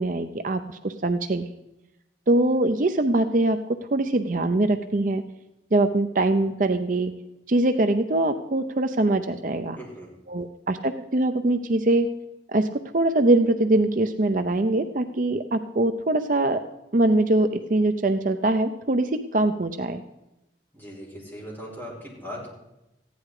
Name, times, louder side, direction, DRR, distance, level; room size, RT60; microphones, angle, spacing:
voice 1, 0.0-1.5 2.3-5.2 5.7-7.1 7.5-9.8 10.3-12.1 12.5-12.7 12.9-16.6 16.9-20.0, right 2 dB, 45° right, 8 dB, 0.6 m, -23 dB
voice 2, 9.8-10.1 20.7-22.5, equal, 10° left, -5 dB, 5.0 m, -39 dB
15.0 x 10.5 x 4.8 m, 0.94 s
head